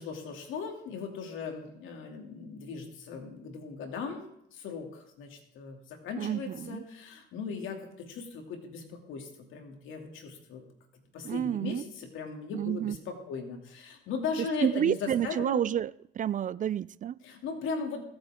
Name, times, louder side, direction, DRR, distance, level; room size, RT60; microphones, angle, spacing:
voice 1, 0.0-4.2 4.5-10.6 11.1-15.6 17.2-18.0, left 5 dB, 80° left, 2.8 m, -38 dB
voice 2, 6.2-6.8 11.2-11.8 12.5-13.0 14.6-17.2, right 10 dB, 40° right, 0.4 m, -29 dB
22.0 x 8.2 x 3.7 m
supercardioid pair, 75°, 20 cm